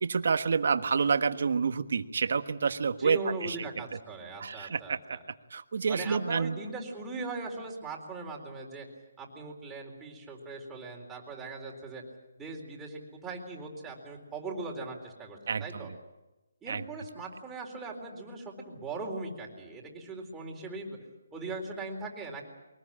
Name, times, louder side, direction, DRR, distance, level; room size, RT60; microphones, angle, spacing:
voice 1, 0.0-3.6 4.4-5.2 5.5-6.6 15.5-15.9 16.7-16.9, right 5 dB, 65° right, 9 dB, 1.4 m, -28 dB
voice 2, 3.0-5.2 5.9-8.9 9.2-12.0 12.4-15.9 16.6-21.0 21.3-22.4, right 3 dB, 10° right, -1 dB, 4.0 m, -40 dB
23.5 x 19.5 x 8.8 m, 1.0 s
hypercardioid pair, 160°, 0 cm